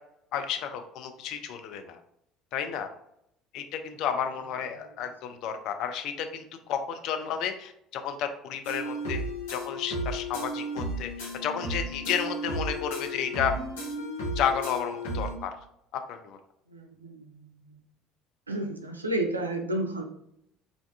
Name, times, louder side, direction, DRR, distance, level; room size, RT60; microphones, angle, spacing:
voice 1, 0.3-2.0 2.5-2.9 3.5-9.2 9.5-13.5 14.4-15.6 15.9-16.4, left 8 dB, 55° left, 7 dB, 0.3 m, -32 dB
sound 1, 8.6-15.4, right 1 dB, 70° left, 0.8 m, -34 dB
voice 2, 16.7-17.5 18.5-20.0, right 1 dB, 85° right, 3 dB, 0.3 m, -31 dB
2.5 x 2.2 x 2.3 m, 0.76 s
figure-of-eight pair, 60°, 0 cm